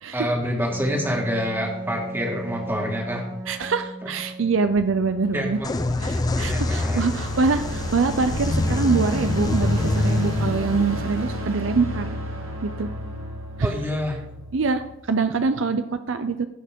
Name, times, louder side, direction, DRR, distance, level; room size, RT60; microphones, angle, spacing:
voice 1, 0.1-3.2 5.3-5.9 6.5-7.3 13.6-14.2, equal, 10° right, 0 dB, 1.9 m, -27 dB
Wind instrument woodwind instrument, 0.7-4.8, right 2 dB, 50° right, 2.1 m, -36 dB
voice 2, 3.5-5.6 6.0-12.1 12.6-12.9 13.6-13.7 14.5-16.5, right 4 dB, 70° right, 10 dB, 0.5 m, -24 dB
sound 1, 4.8-15.0, equal, 90° right, 1.8 m, -33 dB
sound 2, 5.6-13.2, left 2 dB, 20° left, 0.4 m, -26 dB
16.5 x 5.8 x 3.7 m, 0.84 s
head